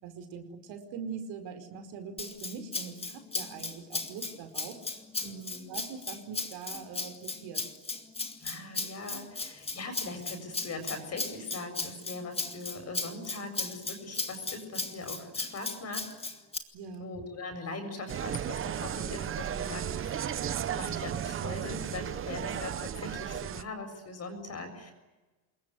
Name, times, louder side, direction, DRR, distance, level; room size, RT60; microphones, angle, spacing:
voice 1, 0.0-4.8 5.7-7.7 16.7-17.0, right 6 dB, 60° right, 7 dB, 4.9 m, -42 dB
Rattle (instrument), 2.2-16.6, left 3 dB, 10° left, 2.0 m, -36 dB
voice 2, 5.2-5.7 8.4-16.1 17.0-24.9, left 3 dB, 30° left, 7 dB, 7.2 m, -41 dB
Insect, 18.1-23.6, right 9 dB, 30° right, 0.9 m, -34 dB
26.5 x 22.0 x 9.8 m, 1.2 s
cardioid pair, 135°, 46 cm